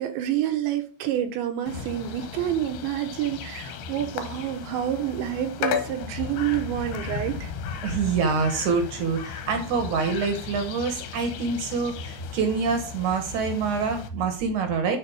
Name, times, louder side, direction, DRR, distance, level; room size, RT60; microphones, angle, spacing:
voice 1, 0.0-7.5, right 11 dB, 85° right, 6 dB, 3.5 m, -28 dB
sound 1, 1.7-14.1, left 7 dB, 75° left, 2.6 m, -35 dB
voice 2, 7.8-15.0, right 5 dB, 65° right, 6 dB, 2.0 m, -26 dB
9.5 x 4.8 x 4.9 m, 0.36 s
omnidirectional pair, 5.1 m